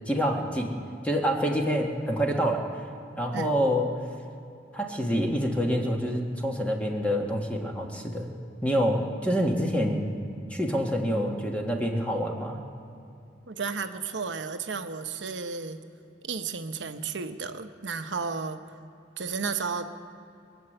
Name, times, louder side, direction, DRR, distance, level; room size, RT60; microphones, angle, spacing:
voice 1, 0.1-0.7 1.0-2.6 3.2-3.9 4.7-8.3 8.6-10.1 10.5-12.6, equal, 10° left, 1 dB, 1.5 m, -27 dB
voice 2, 13.5-15.8 16.2-18.6 19.2-19.8, right 5 dB, 85° right, 8 dB, 0.9 m, -33 dB
23.0 x 8.1 x 7.8 m, 2.7 s
head